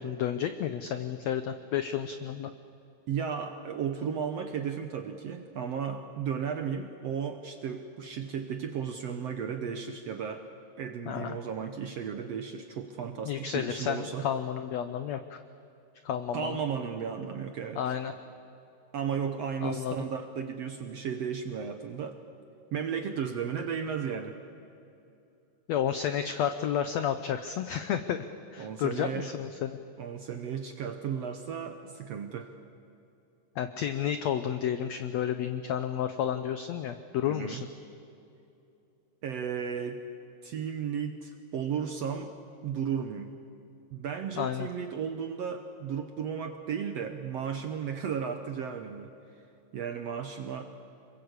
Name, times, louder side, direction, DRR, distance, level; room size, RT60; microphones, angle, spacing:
voice 1, 0.0-2.5 11.1-11.4 13.2-15.4 16.0-16.6 17.8-18.1 19.6-19.9 25.7-28.3 28.5-29.8 33.6-37.7 44.4-44.7, left 9 dB, 80° left, 9 dB, 1.5 m, -31 dB
voice 2, 3.1-10.5 10.8-14.3 16.3-17.8 18.9-22.2 22.7-24.4 28.6-29.3 30.0-32.5 37.3-37.6 39.2-40.0 40.4-42.3 42.6-43.3 43.9-49.1 49.7-50.7, right 7 dB, 65° right, 7 dB, 1.6 m, -34 dB
26.5 x 22.5 x 8.2 m, 2.7 s
omnidirectional pair, 4.1 m